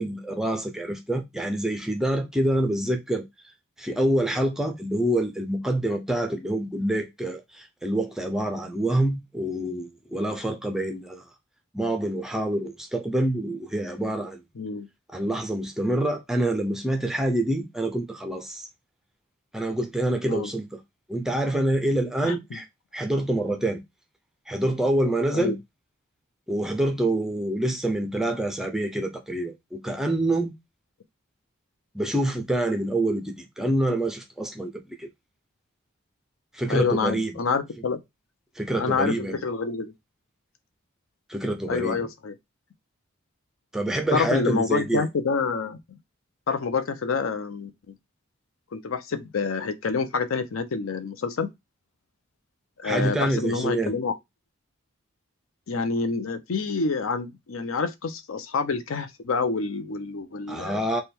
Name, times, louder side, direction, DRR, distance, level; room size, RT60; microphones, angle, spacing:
voice 1, 0.0-3.2 3.8-11.2 11.7-14.4 15.1-18.7 19.5-20.8 21.1-22.7 22.9-23.8 24.5-25.6 26.5-30.5 31.9-35.1 36.5-37.4 38.6-39.4 41.3-42.1 43.7-45.1 52.8-53.9 60.5-61.0, right 1 dB, ahead, 0.4 m, -26 dB
voice 2, 14.6-14.9 20.3-20.5 22.2-22.4 25.3-25.6 36.7-38.0 38.8-39.9 41.7-42.3 44.1-45.8 46.5-47.7 48.7-51.5 52.8-54.1 55.7-60.8, left 4 dB, 75° left, 0.5 m, -27 dB
3.4 x 2.2 x 4.3 m
head